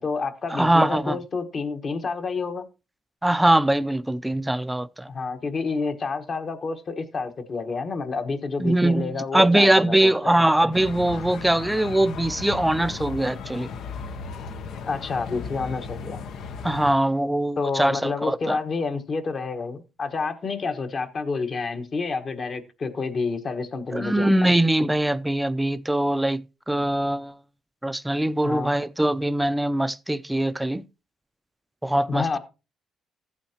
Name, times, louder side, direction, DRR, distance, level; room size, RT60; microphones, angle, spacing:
voice 1, 0.0-2.6 5.1-10.4 14.9-16.2 17.6-24.5 28.4-28.8 32.1-32.4, left 4 dB, 45° left, 1.3 m, -29 dB
voice 2, 0.5-1.2 3.2-5.1 8.6-13.7 16.6-18.6 23.9-27.3 27.8-30.8 31.8-32.4, right 1 dB, 10° right, 0.5 m, -22 dB
sound 1, 10.7-16.9, left 5 dB, 75° left, 0.8 m, -36 dB
14.0 x 8.5 x 2.9 m
cardioid pair, 90°, 0 cm